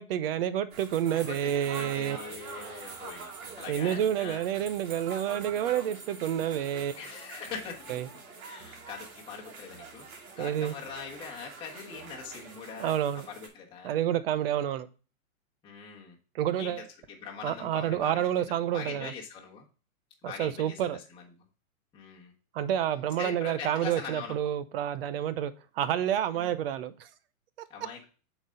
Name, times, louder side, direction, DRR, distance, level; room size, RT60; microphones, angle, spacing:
voice 1, 0.0-2.2 3.7-7.0 7.9-8.1 10.4-10.7 12.8-13.3 13.8-14.9 16.3-16.8 17.4-19.1 20.2-21.0 22.5-27.1, right 10 dB, 45° right, 0.6 m, -29 dB
sound 1, 0.7-13.5, right 5 dB, 70° right, 2.5 m, -45 dB
voice 2, 1.1-3.3 3.6-4.4 6.9-7.9 8.4-10.1 10.4-12.9 13.3-14.0 15.6-16.1 16.5-19.7 20.2-21.2 21.9-22.3 23.2-24.4 26.3-26.5 27.7-28.1, left 6 dB, 10° left, 1.2 m, -42 dB
7.9 x 4.1 x 3.7 m
hypercardioid pair, 135°, 43 cm